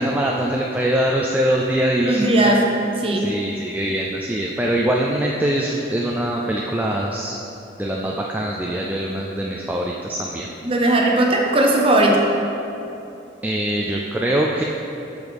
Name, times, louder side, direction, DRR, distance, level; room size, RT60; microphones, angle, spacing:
voice 1, 0.0-2.3 3.2-7.4 7.8-10.5 13.4-14.6, right 1 dB, 10° right, -2 dB, 0.3 m, -23 dB
voice 2, 2.0-3.3 10.6-12.2, right 1 dB, 30° right, -1 dB, 0.8 m, -18 dB
8.5 x 6.3 x 3.4 m, 2.8 s
head